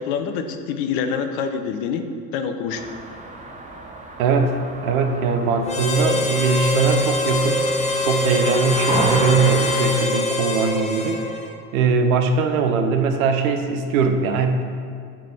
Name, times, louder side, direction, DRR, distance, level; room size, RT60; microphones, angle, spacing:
voice 1, 0.0-2.0 2.3-2.8, left 6 dB, 50° left, 7 dB, 0.8 m, -26 dB
sound 1, 2.7-9.9, right 2 dB, 15° right, 1.0 m, -31 dB
voice 2, 4.2-7.7 8.0-11.2 11.7-14.7, right 4 dB, 60° right, 6 dB, 0.9 m, -21 dB
Harmonica, 5.7-11.6, left 2 dB, 15° left, 0.8 m, -23 dB
7.2 x 5.0 x 5.9 m, 2.4 s
figure-of-eight pair, 65°, 48 cm